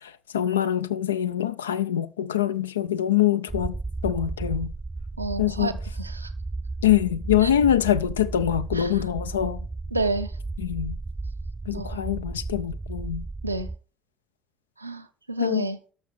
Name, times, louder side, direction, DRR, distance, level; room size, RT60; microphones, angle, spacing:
voice 1, 0.0-3.8 4.0-4.7 5.4-5.7 6.8-9.7 10.6-11.0 11.7-13.2 15.4-15.7, left 11 dB, 75° left, 0.3 m, -24 dB
sound 1, 3.5-13.8, right 3 dB, 15° right, 0.3 m, -34 dB
voice 2, 5.2-5.7 6.0-6.3 7.4-7.5 8.7-9.0 9.9-10.3 11.7-12.0 13.4-13.7 14.8-15.8, right 3 dB, 85° right, 0.5 m, -30 dB
12.0 x 6.3 x 3.3 m
figure-of-eight pair, 55°, 0 cm